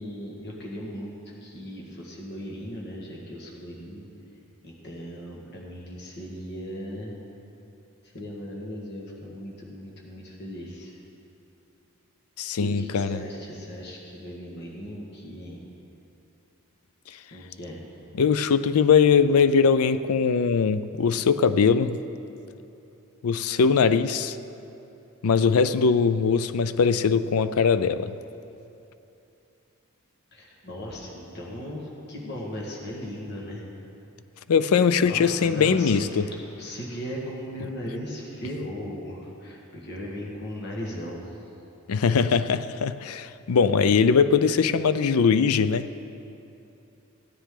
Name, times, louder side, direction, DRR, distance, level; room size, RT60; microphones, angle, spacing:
voice 1, 0.0-4.1 4.6-7.2 8.0-11.0 12.6-15.6 17.3-17.8 30.3-33.7 35.0-41.3, equal, 50° left, -2 dB, 1.7 m, -37 dB
voice 2, 12.4-13.2 17.1-17.2 18.1-22.0 23.2-24.4 25.2-28.1 34.5-36.3 41.9-45.9, left 6 dB, 90° left, 13 dB, 0.4 m, -21 dB
15.5 x 10.0 x 3.8 m, 2.8 s
head